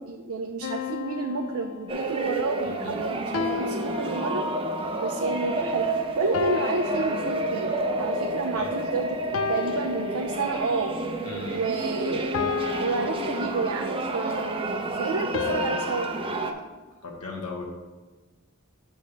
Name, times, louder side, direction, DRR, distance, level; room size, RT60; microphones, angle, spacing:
voice 1, 0.0-4.4 5.0-5.9 6.2-7.7 8.0-10.9 11.5-12.4 12.8-16.1, right 4 dB, 70° right, 4 dB, 0.5 m, -30 dB
sound 1, 0.6-2.3 3.3-4.8 6.3-8.0 9.3-10.9 12.3-14.1 15.3-16.4, left 6 dB, 65° left, 0.4 m, -33 dB
sound 2, 1.9-16.5, right 2 dB, 25° right, 0.6 m, -30 dB
voice 2, 2.6-3.0 8.4-8.7 11.2-11.6 17.0-17.6, left 3 dB, 85° left, 0 dB, 1.3 m, -37 dB
8.6 x 3.1 x 6.4 m, 1.3 s
head